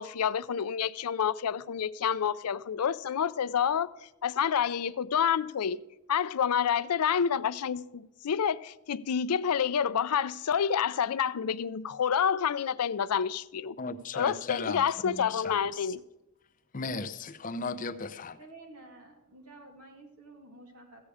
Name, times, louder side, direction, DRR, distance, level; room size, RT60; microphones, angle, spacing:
voice 1, 0.0-3.9 4.2-5.8 6.1-13.8 14.1-16.0, left 7 dB, 90° left, 0.5 m, -28 dB
voice 2, 13.8-15.9 16.7-18.4, left 4 dB, 35° left, 0.6 m, -36 dB
voice 3, 18.3-21.0, right 2 dB, 85° right, 2.7 m, -51 dB
15.0 x 8.3 x 4.9 m
head